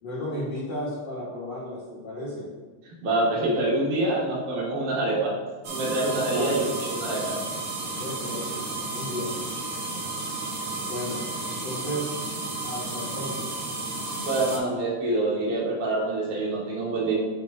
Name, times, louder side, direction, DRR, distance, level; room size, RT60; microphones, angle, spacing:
voice 1, 0.0-2.5 6.3-6.6 8.0-9.3 10.9-12.2 12.6-13.7, left 1 dB, 60° left, -10 dB, 2.6 m, -34 dB
voice 2, 3.0-5.4 5.7-7.4 14.2-17.1, right 2 dB, 80° right, -4 dB, 3.0 m, -26 dB
sound 1, 5.6-14.6, right 2 dB, 60° right, 1.1 m, -32 dB
7.4 x 6.3 x 2.7 m, 1.4 s
omnidirectional pair, 3.4 m